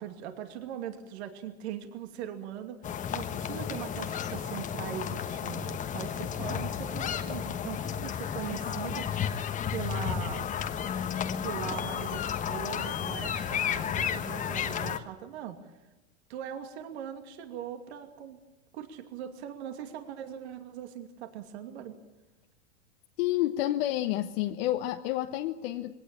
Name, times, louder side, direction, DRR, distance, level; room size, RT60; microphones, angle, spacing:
voice 1, 0.0-9.4 9.7-10.4 11.4-15.6 16.3-18.4 18.7-21.9, right 9 dB, 65° right, 6 dB, 2.6 m, -40 dB
sound 1, 2.8-15.0, left 8 dB, 20° left, 1.2 m, -32 dB
voice 2, 23.2-25.9, left 14 dB, 55° left, 5 dB, 1.3 m, -29 dB
21.5 x 17.5 x 8.7 m, 1.1 s
supercardioid pair, 140°, 35 cm